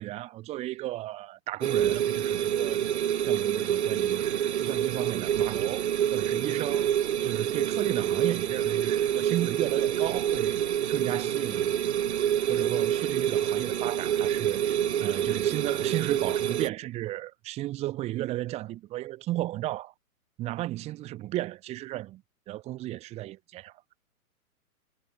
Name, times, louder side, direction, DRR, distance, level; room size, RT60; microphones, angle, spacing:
voice 1, 0.0-2.8 3.2-6.9 7.2-10.6 10.9-11.8 12.5-19.9 20.4-22.2 22.5-23.7, right 16 dB, 15° right, 1.0 m, -34 dB
sound 1, 1.6-16.7, right 10 dB, 50° right, 0.7 m, -27 dB
figure-of-eight pair, 120°, 44 cm